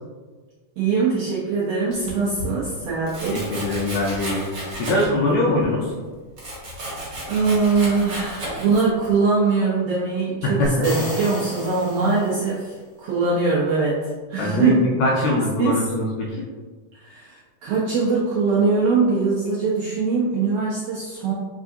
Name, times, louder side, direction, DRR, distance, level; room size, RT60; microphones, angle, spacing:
voice 1, 0.8-3.8 7.3-14.8 15.6-15.9 16.9-21.3, right 4 dB, 80° right, -7 dB, 1.4 m, -22 dB
Domestic sounds home sounds, 1.9-2.5 3.1-5.3 5.6-9.1, right 1 dB, 45° right, 1.6 m, -33 dB
voice 2, 3.3-4.4 4.7-5.9 10.4-10.7 14.4-16.4, left 2 dB, 80° left, -2 dB, 1.7 m, -22 dB
sound 1, 10.6-12.7, left 1 dB, 55° left, 1.0 m, -33 dB
4.6 x 3.6 x 2.5 m, 1.4 s
omnidirectional pair, 3.6 m